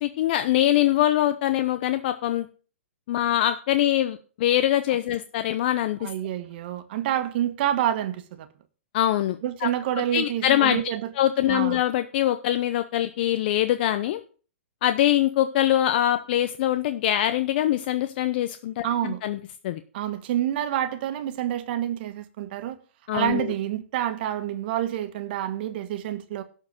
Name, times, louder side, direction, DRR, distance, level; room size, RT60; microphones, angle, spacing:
voice 1, 0.0-2.5 3.1-6.1 8.9-9.4 9.6-9.7 10.0-10.8 11.2-14.2 14.8-19.4 19.6-19.8 23.1-23.5, left 12 dB, 50° left, 0.8 m, -23 dB
voice 2, 6.0-8.5 9.4-11.1 11.5-11.8 18.8-19.2 19.9-22.8 23.1-26.4, right 11 dB, 50° right, 1.5 m, -28 dB
12.0 x 4.5 x 7.3 m
hypercardioid pair, 130°, 7 cm